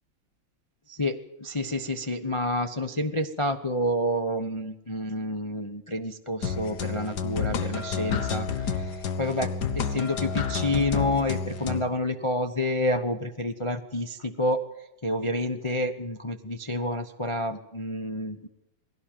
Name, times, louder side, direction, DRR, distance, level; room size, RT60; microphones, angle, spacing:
voice 1, 0.9-14.6 15.0-18.5, left 1 dB, 40° left, 6 dB, 0.4 m, -29 dB
sound 1, 6.4-11.8, left 5 dB, 55° left, 1.7 m, -30 dB
20.5 x 16.5 x 9.0 m, 0.90 s
omnidirectional pair, 2.3 m